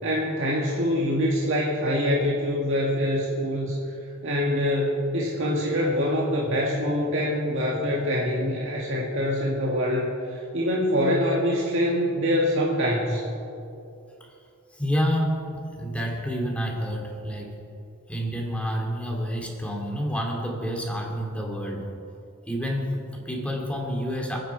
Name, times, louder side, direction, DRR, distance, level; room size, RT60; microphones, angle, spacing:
voice 1, 0.0-3.8 4.2-13.2, equal, 65° right, -4 dB, 2.1 m, -25 dB
voice 2, 14.7-17.5 18.1-21.8 22.5-24.4, equal, 5° left, 0 dB, 2.5 m, -29 dB
29.0 x 10.0 x 4.7 m, 2.6 s
head